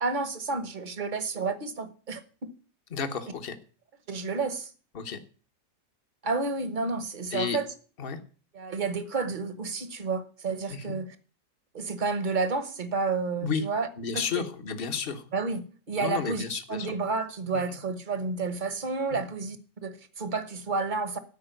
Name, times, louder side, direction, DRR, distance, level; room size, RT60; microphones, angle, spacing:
voice 1, 0.0-2.2 4.1-4.7 6.2-7.7 8.5-11.2 11.7-13.9 14.1-14.4 15.3-21.2, right 4 dB, 30° right, 1.1 m, -30 dB
voice 2, 2.9-3.5 4.9-5.2 7.3-7.6 8.0-8.2 10.7-11.0 13.4-13.6 14.0-15.3 16.0-16.9 19.1-19.2, left 6 dB, 35° left, 1.2 m, -32 dB
13.5 x 5.0 x 9.1 m
omnidirectional pair, 1.8 m